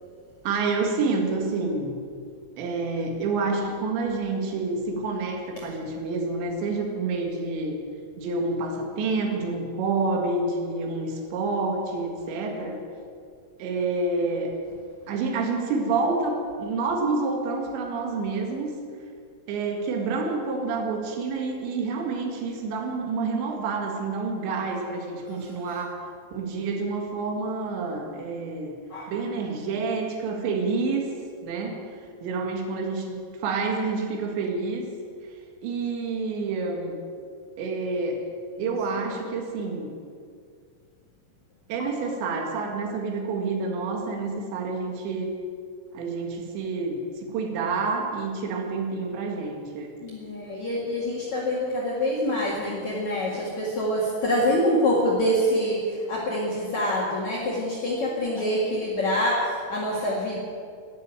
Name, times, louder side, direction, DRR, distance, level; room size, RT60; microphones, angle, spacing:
voice 1, 0.4-2.0 2.6-7.8 8.2-12.8 13.6-14.5 15.1-18.7 19.5-26.0 26.3-28.8 29.1-31.1 31.4-31.8 32.2-34.9 35.6-37.0 37.6-38.2 38.6-39.9 41.7-45.3 45.9-49.9, right 3 dB, 75° right, 2 dB, 4.1 m, -28 dB
voice 2, 50.0-60.4, equal, 50° left, -5 dB, 2.6 m, -25 dB
12.5 x 12.0 x 9.0 m, 2.2 s
omnidirectional pair, 5.3 m